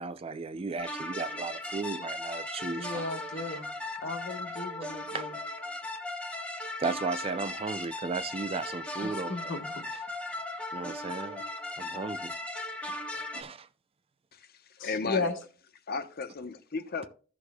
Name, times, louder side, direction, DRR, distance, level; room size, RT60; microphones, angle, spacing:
voice 1, 0.0-3.1 3.4-3.6 5.1-5.3 6.8-9.6 9.9-10.0 10.7-11.4 11.8-12.4 13.3-13.7, right 4 dB, 25° right, 0.4 m, -35 dB
sound 1, 0.8-13.4, left 1 dB, 5° left, 0.9 m, -38 dB
voice 2, 2.8-3.7 4.0-5.3 9.0-9.8 13.1-13.2 14.8-15.3, left 3 dB, 65° left, 1.3 m, -35 dB
voice 3, 14.8-15.3 15.9-17.1, left 4 dB, 45° left, 0.9 m, -34 dB
14.5 x 6.3 x 2.2 m
head